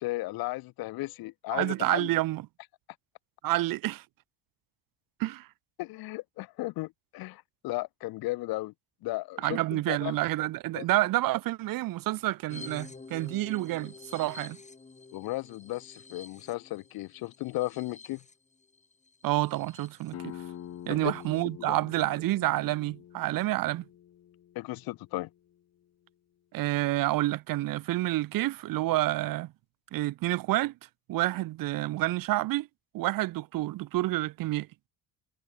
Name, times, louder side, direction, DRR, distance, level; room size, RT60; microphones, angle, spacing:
voice 1, 0.0-2.1 5.8-8.7 9.0-10.2 10.7-10.9 15.1-18.2 20.9-21.1 21.6-21.8 24.5-25.3, left 19 dB, 65° left, 0.6 m, -35 dB
voice 2, 1.5-2.5 3.4-4.0 5.2-5.5 9.4-14.6 19.2-20.4 20.9-23.8 26.5-29.5 29.9-30.7 31.1-32.7 32.9-34.7, right 17 dB, 55° right, 0.7 m, -29 dB
sound 1, 12.5-20.1 20.6-20.7 20.9-21.4, left 4 dB, 15° left, 2.2 m, -49 dB
sound 2, 20.1-25.5, left 11 dB, 40° left, 1.0 m, -46 dB
cardioid pair, 100°, 40 cm